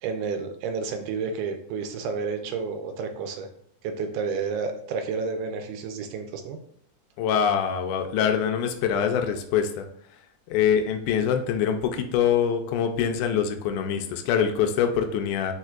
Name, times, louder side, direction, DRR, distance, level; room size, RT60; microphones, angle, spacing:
voice 1, 0.0-3.5 3.8-6.6, right 5 dB, 90° right, 5 dB, 2.1 m, -30 dB
voice 2, 7.2-9.9 10.5-15.5, left 8 dB, 90° left, 5 dB, 2.1 m, -24 dB
4.4 x 4.4 x 2.4 m, 0.64 s
omnidirectional pair, 3.5 m